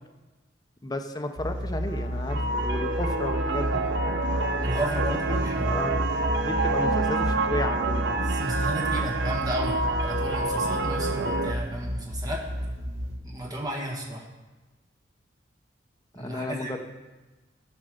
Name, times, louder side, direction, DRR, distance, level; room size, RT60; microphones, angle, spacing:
voice 1, 0.8-3.8 5.1-6.0 6.4-8.2 16.2-16.8, left 1 dB, 20° left, 5 dB, 0.6 m, -33 dB
sound 1, 1.4-13.2, equal, 85° right, 1.5 m, -31 dB
Wind instrument woodwind instrument, 1.8-10.0, right 2 dB, 75° left, 1.0 m, -48 dB
sound 2, 2.3-11.5, right 3 dB, 65° right, 0.7 m, -28 dB
voice 2, 4.6-5.7 8.2-12.4 13.2-14.2 16.1-16.7, right 1 dB, 20° right, -2 dB, 1.5 m, -33 dB
13.5 x 5.4 x 5.0 m, 1.2 s
head